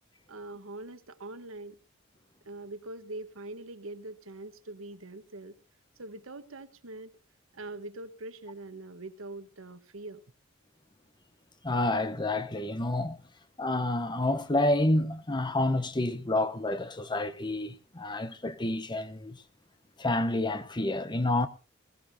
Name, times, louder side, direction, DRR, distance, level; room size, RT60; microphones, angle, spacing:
voice 1, 0.3-1.8 2.4-5.6 6.0-7.2 7.5-10.2, right 2 dB, 80° right, 1.3 m, -43 dB
voice 2, 11.6-13.2 13.6-19.4 20.0-21.5, left 2 dB, 20° left, 1.0 m, -29 dB
20.5 x 17.0 x 2.8 m
head